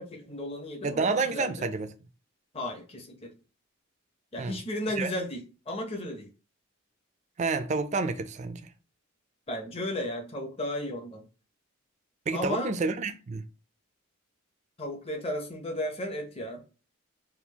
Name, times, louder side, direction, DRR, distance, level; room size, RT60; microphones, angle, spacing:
voice 1, 0.0-1.7 2.5-3.3 4.3-6.3 9.5-11.2 12.3-12.7 14.8-16.6, left 1 dB, 25° left, 0.7 m, -34 dB
voice 2, 0.8-1.9 4.4-4.5 5.0-5.1 7.4-8.6 12.3-13.4, right 4 dB, 35° right, 0.4 m, -29 dB
4.3 x 2.4 x 2.8 m
head